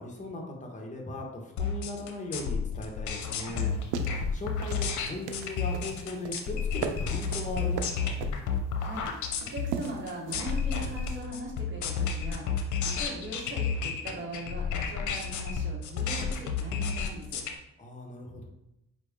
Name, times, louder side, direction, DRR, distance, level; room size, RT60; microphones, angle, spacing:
voice 1, 0.0-8.1 17.8-18.5, left 2 dB, 25° left, 0 dB, 1.1 m, -38 dB
sound 1, 1.6-17.5, left 6 dB, 75° left, 0.7 m, -31 dB
sound 2, 3.7-11.2, right 7 dB, 90° right, 0.5 m, -39 dB
voice 2, 9.4-17.4, right 1 dB, 40° right, -2 dB, 1.5 m, -40 dB
4.6 x 2.9 x 3.6 m, 0.87 s
cardioid pair, 90°, 30 cm